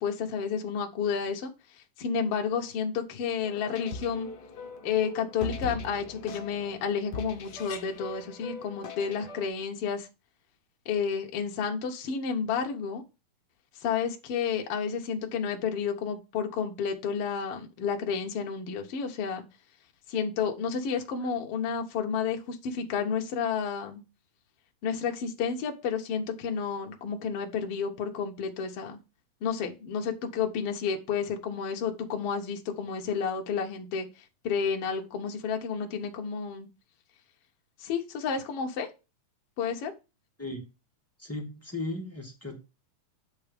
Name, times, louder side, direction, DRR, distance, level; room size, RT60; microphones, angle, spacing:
voice 1, 0.0-1.5 2.0-4.3 4.8-10.1 10.9-13.0 13.8-19.4 20.1-24.0 24.8-29.0 29.4-34.1 34.4-36.7 37.8-38.9 39.6-39.9, left 6 dB, 60° left, 1.9 m, -31 dB
sound 1, 3.4-9.5, left 3 dB, 85° left, 0.9 m, -40 dB
voice 2, 41.2-42.6, left 2 dB, 5° left, 1.1 m, -36 dB
9.4 x 4.0 x 5.1 m
omnidirectional pair, 3.5 m